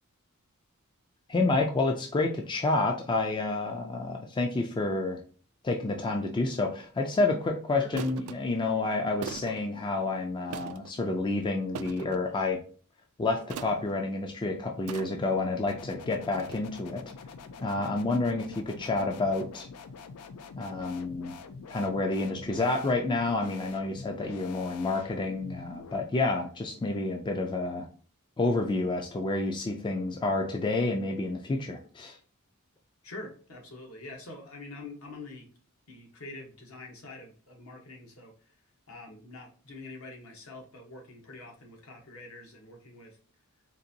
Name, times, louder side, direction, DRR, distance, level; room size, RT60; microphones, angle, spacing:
voice 1, 1.3-5.2 5.6-12.6 13.2-17.0 17.6-19.7 20.5-21.4 21.7-27.9 28.4-32.2, left 2 dB, 20° left, 0.3 m, -29 dB
sound 1, 6.8-7.0 8.0-8.4 9.2-9.6 10.5-10.9 11.8-12.2 13.5-13.9 14.9-15.4 16.4-16.5, right 7 dB, 80° right, 0.3 m, -40 dB
sound 2, 15.7-26.0, left 4 dB, 90° left, 0.4 m, -46 dB
voice 2, 33.0-35.5 35.9-38.6 38.9-43.2, left 2 dB, 70° left, 1.1 m, -45 dB
3.9 x 2.5 x 2.7 m
head